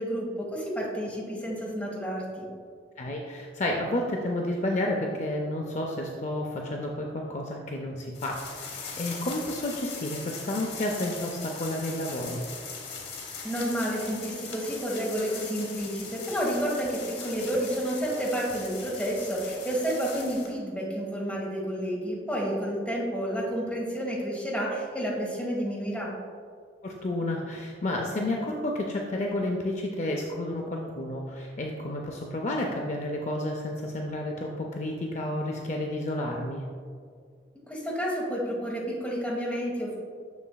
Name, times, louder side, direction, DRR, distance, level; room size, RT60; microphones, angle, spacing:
voice 1, 0.0-2.5 13.4-26.1 37.7-40.0, equal, 5° left, -4 dB, 1.3 m, -30 dB
voice 2, 3.0-12.4 26.8-36.6, left 1 dB, 40° left, 1 dB, 0.4 m, -31 dB
sound 1, 8.1-20.5, left 5 dB, 70° left, 1.1 m, -40 dB
7.0 x 6.3 x 2.2 m, 2.1 s
head